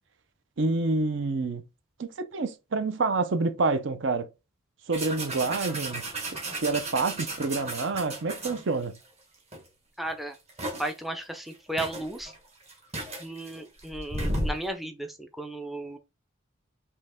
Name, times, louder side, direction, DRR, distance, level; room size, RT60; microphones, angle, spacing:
voice 1, 0.6-1.6 2.0-4.3 4.9-6.1 6.6-9.0, right 3 dB, 60° right, 0.6 m, -27 dB
sound 1, 4.9-9.0 9.5-9.7 10.0-11.0 11.5-11.6 11.8-14.7, right 1 dB, 30° right, 1.4 m, -34 dB
voice 2, 10.0-10.4 10.8-12.3 13.2-16.0, right 1 dB, ahead, 0.4 m, -34 dB
4.4 x 2.8 x 3.6 m
head